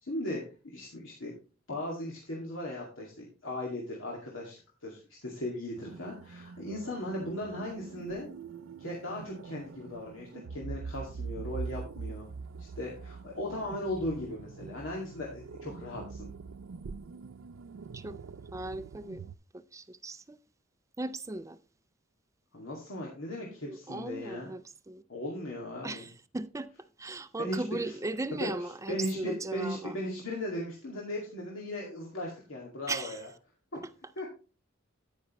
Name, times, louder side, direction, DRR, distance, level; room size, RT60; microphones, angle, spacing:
voice 1, 0.0-1.3 1.7-8.3 8.8-12.3 12.6-16.3 22.5-24.5 25.1-26.1 27.4-27.6 28.4-28.5 28.9-33.3 33.7-33.8 34.2-34.3, left 1 dB, 80° left, 2.3 m, -37 dB
sound 1, 5.8-19.4, right 5 dB, 85° right, 0.4 m, -44 dB
voice 2, 18.5-19.2 19.5-20.4 21.0-21.6 23.6-24.6 24.9-25.0 25.8-26.7 27.0-30.0 32.9-33.2, right 2 dB, 15° right, 0.5 m, -37 dB
9.9 x 9.4 x 3.1 m
head